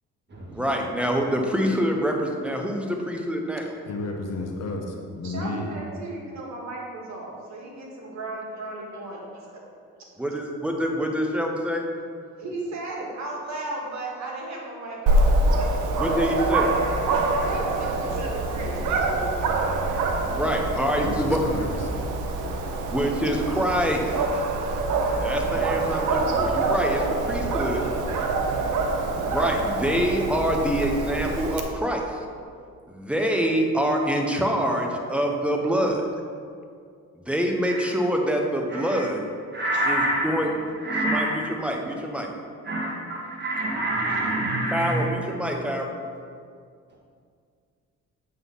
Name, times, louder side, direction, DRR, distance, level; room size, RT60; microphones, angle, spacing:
voice 1, 0.5-3.7 10.2-11.8 16.0-16.7 20.3-21.4 22.9-24.4 25.2-27.8 29.1-32.2 32.9-36.1 37.1-39.2 39.9-40.5 41.0-42.3 44.7-46.0, equal, 5° right, 1 dB, 1.0 m, -26 dB
voice 2, 3.9-5.7 21.0-21.7, left 3 dB, 60° left, 1 dB, 1.1 m, -32 dB
voice 3, 5.2-9.2 9.5-9.6 12.4-15.3 15.6-15.7 17.4-20.3 20.7-21.7 27.6-28.4 28.7-29.0, right 2 dB, 65° right, -2 dB, 1.9 m, -36 dB
Dog, 15.1-31.6, right 2 dB, 90° right, 0.8 m, -25 dB
voice 4, 39.5-40.5 40.8-41.4 42.6-45.1 45.4-45.5, right 1 dB, 35° right, -4 dB, 1.9 m, -26 dB
7.9 x 4.0 x 5.6 m, 2.2 s
cardioid pair, 90°, 30 cm